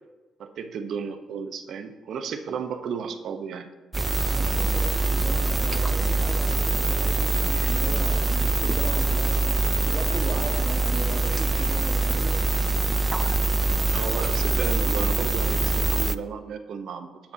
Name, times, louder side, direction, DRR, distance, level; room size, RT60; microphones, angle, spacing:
voice 1, 0.4-3.7 13.9-17.3, right 6 dB, 65° right, 8 dB, 0.8 m, -33 dB
sound 1, 3.9-16.2, right 3 dB, 20° right, 0.4 m, -24 dB
voice 2, 4.3-12.4, right 3 dB, 40° right, 0 dB, 1.4 m, -37 dB
13.0 x 8.8 x 2.8 m, 1.2 s
cardioid pair, 90°, 0 cm